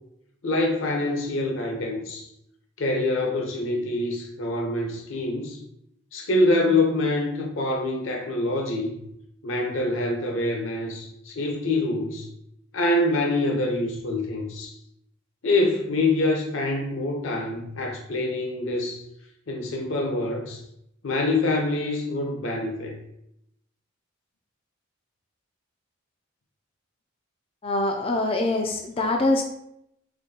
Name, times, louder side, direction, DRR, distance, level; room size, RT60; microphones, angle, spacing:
voice 1, 0.4-2.3 2.8-5.6 6.1-9.0 9.4-12.3 12.7-14.7 15.4-19.0 19.5-20.6 21.0-22.9, left 2 dB, 65° left, 0 dB, 0.7 m, -25 dB
voice 2, 27.6-29.4, left 2 dB, 25° left, 3 dB, 0.3 m, -24 dB
5.1 x 3.2 x 2.7 m, 0.78 s
head